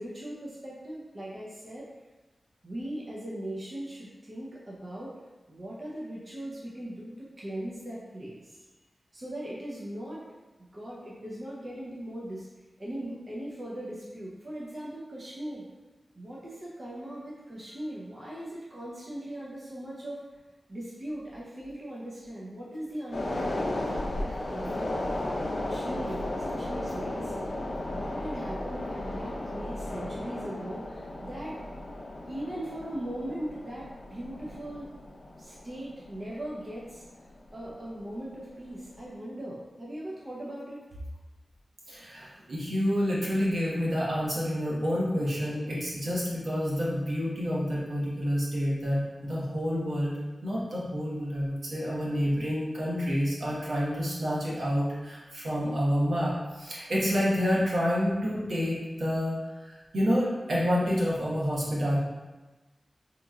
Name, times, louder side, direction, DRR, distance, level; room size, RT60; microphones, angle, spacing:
voice 1, 0.0-1.9 2.6-5.1 5.5-8.6 9.1-10.2 10.6-12.5 12.8-15.6 16.1-20.2 20.7-23.7 24.1-25.0 25.6-27.5 27.9-31.6 32.2-34.9 35.4-37.0 37.5-40.8, right 1 dB, 40° right, -6 dB, 0.7 m, -39 dB
sound 1, 23.1-37.7 38.0-38.2, left 1 dB, 65° left, 0.5 m, -35 dB
voice 2, 41.9-50.2 50.4-62.0, equal, 75° right, -6 dB, 1.1 m, -28 dB
5.0 x 3.0 x 2.4 m, 1.2 s
wide cardioid pair, 85°, 0 cm